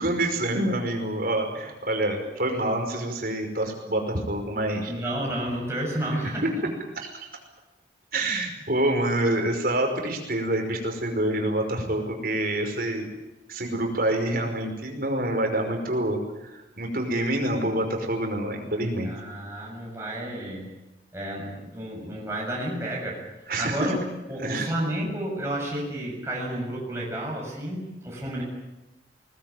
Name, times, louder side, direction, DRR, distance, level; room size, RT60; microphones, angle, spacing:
voice 1, 0.0-4.9 6.0-6.2 7.1-7.3 8.1-13.1 13.5-19.1 23.5-23.8 24.4-24.7, right 1 dB, 55° right, 3 dB, 5.4 m, -27 dB
voice 2, 4.9-6.7 19.0-20.7 21.1-23.2 23.6-24.0 24.3-28.4, right 1 dB, 15° right, -3 dB, 7.0 m, -31 dB
21.0 x 20.0 x 9.4 m, 1.0 s
head